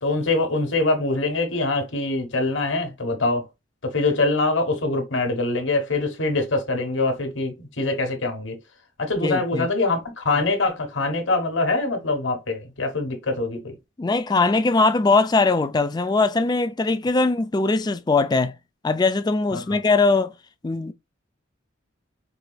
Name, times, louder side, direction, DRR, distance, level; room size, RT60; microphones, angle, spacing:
voice 1, 0.0-3.5 3.8-8.6 9.0-13.8 19.5-19.8, left 2 dB, 70° left, 1.2 m, -24 dB
voice 2, 9.2-9.7 14.0-18.5 18.8-20.3 20.6-20.9, left 3 dB, 20° left, 0.3 m, -21 dB
4.8 x 2.9 x 2.3 m
head